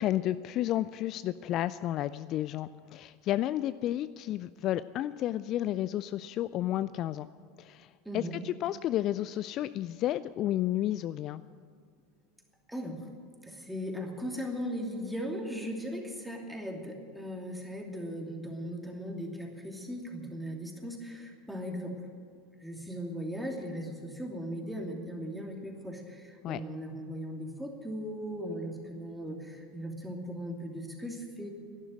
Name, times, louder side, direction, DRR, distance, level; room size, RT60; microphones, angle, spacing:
voice 1, 0.0-7.3 7.6-7.9 8.1-11.4 26.4-26.6, left 13 dB, 45° left, 15 dB, 0.3 m, -31 dB
voice 2, 8.0-8.3 12.7-13.0 13.4-22.0 22.6-31.5, equal, 5° right, 1 dB, 2.7 m, -38 dB
12.0 x 11.0 x 9.2 m, 2.3 s
figure-of-eight pair, 80°, 0 cm